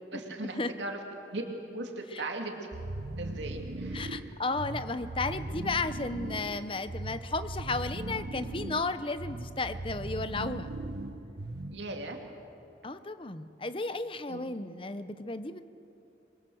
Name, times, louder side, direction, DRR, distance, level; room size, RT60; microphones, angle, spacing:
voice 1, 0.1-1.0 1.3-1.4 1.7-2.7 3.2-4.3 11.7-12.2 14.3-14.4, right 2 dB, 90° right, 2 dB, 2.5 m, -38 dB
sound 1, 2.7-11.9, right 2 dB, 70° right, 1.1 m, -39 dB
voice 2, 3.9-10.7 12.8-15.6, left 3 dB, 30° left, 11 dB, 0.9 m, -34 dB
27.0 x 22.5 x 7.8 m, 2.8 s
head